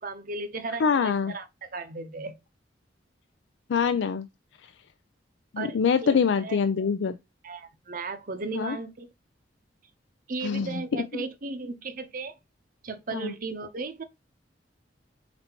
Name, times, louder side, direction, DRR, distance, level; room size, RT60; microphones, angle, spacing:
voice 1, 0.0-2.4 5.6-6.6 7.4-9.1 10.3-12.4 12.8-14.0, right 3 dB, 50° right, 0.7 m, -36 dB
voice 2, 0.8-1.3 3.7-4.3 5.5-7.1 8.5-8.8 10.4-10.8 11.1-11.2 13.1-13.3, left 6 dB, 85° left, 0.4 m, -25 dB
4.4 x 4.1 x 2.9 m
head